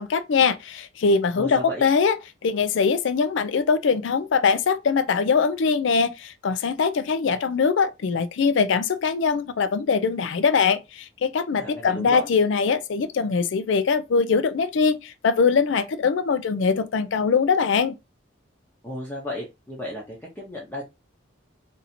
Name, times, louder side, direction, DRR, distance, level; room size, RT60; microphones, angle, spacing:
voice 1, 0.0-2.2 2.4-18.0, left 5 dB, 70° left, 0.4 m, -22 dB
voice 2, 1.4-1.8 11.6-12.3 18.8-20.8, equal, 10° left, 0.7 m, -34 dB
2.7 x 2.6 x 4.2 m
head